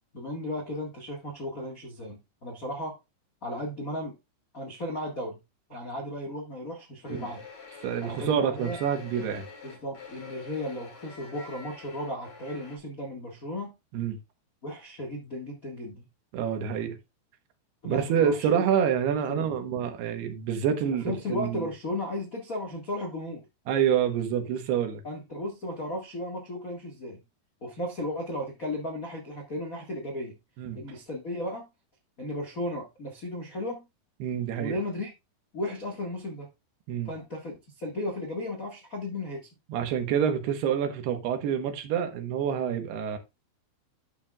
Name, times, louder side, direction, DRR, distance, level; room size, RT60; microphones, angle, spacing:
voice 1, 0.1-3.0 3.4-4.1 4.5-5.4 5.7-7.4 8.0-8.8 9.6-13.7 14.6-16.0 17.8-18.7 19.3-19.6 21.0-23.4 25.0-27.2 27.6-30.4 30.7-31.7 32.2-33.8 34.6-35.1 35.5-36.5 37.0-39.5, left 1 dB, 80° left, 0.7 m, -35 dB
sound 1, 7.0-12.8, left 5 dB, 55° left, 4.0 m, -46 dB
voice 2, 7.8-9.5 13.9-14.2 16.3-17.0 17.8-21.7 23.7-25.0 30.6-30.8 34.2-34.8 36.9-37.1 39.7-43.2, right 8 dB, 75° right, 3.1 m, -27 dB
11.5 x 7.4 x 2.4 m
omnidirectional pair, 4.9 m